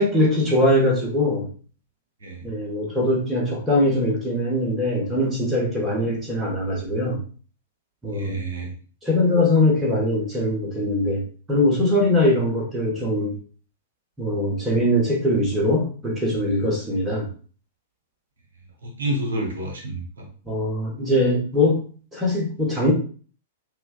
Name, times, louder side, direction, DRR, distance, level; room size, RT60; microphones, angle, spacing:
voice 1, 0.0-1.5 2.4-7.2 8.0-8.4 9.0-13.3 14.2-17.3 20.5-21.8 22.1-22.9, left 1 dB, 10° right, -2 dB, 1.2 m, -22 dB
voice 2, 8.1-8.7 18.8-20.3, right 1 dB, 65° right, 1 dB, 0.9 m, -29 dB
5.9 x 2.2 x 2.3 m, 0.41 s
figure-of-eight pair, 100°, 0 cm